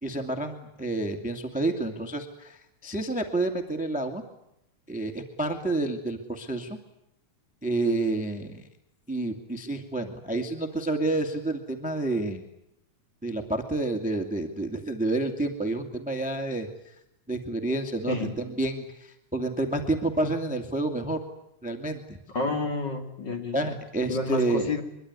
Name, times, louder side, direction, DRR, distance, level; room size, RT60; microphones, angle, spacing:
voice 1, 0.0-4.2 4.9-6.8 7.6-8.6 9.1-12.4 13.2-16.7 17.3-21.2 21.6-22.2 23.5-24.7, right 2 dB, 5° right, 6 dB, 1.8 m, -29 dB
voice 2, 22.3-23.8 24.1-24.8, left 3 dB, 40° left, 5 dB, 2.9 m, -30 dB
24.5 x 23.0 x 9.7 m, 0.81 s
omnidirectional pair, 3.3 m